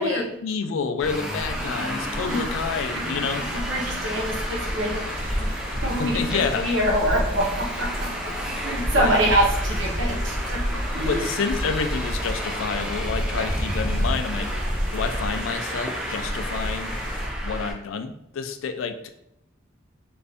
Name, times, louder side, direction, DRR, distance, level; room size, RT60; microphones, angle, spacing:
voice 1, 0.0-3.4 5.7-6.7 8.9-9.2 11.0-14.5 14.9-17.0 17.4-19.1, left 5 dB, 80° left, 8 dB, 0.4 m, -29 dB
Traffic noise roadway noise, 1.0-17.7, equal, 5° right, 0.3 m, -29 dB
sound 1, 1.5-17.3, equal, 45° right, 1.0 m, -38 dB
voice 2, 3.3-5.5 5.8-8.1 8.5-11.3 13.3-13.5, right 1 dB, 80° right, -2 dB, 0.9 m, -26 dB
2.6 x 2.5 x 3.3 m, 0.77 s
head